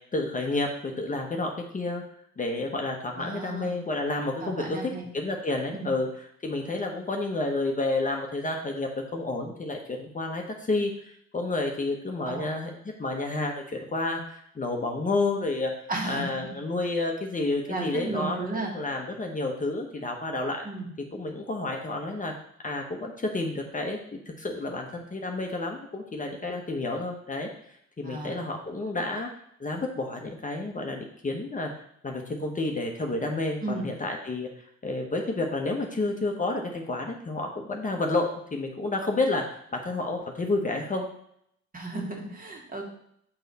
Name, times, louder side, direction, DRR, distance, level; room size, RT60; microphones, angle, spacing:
voice 1, 0.1-2.0 2.4-15.7 16.1-20.6 21.1-22.3 22.6-27.5 28.0-29.3 29.6-34.5 34.8-41.0, left 2 dB, 25° left, 2 dB, 1.0 m, -30 dB
voice 2, 3.2-3.8 4.4-5.0 5.7-6.0 12.3-12.5 15.9-16.3 17.7-18.7 20.6-20.9 28.0-28.4 33.6-33.9 41.7-42.8, right 2 dB, 30° right, 0 dB, 1.9 m, -34 dB
6.4 x 5.5 x 4.1 m, 0.70 s
cardioid pair, 90°, 30 cm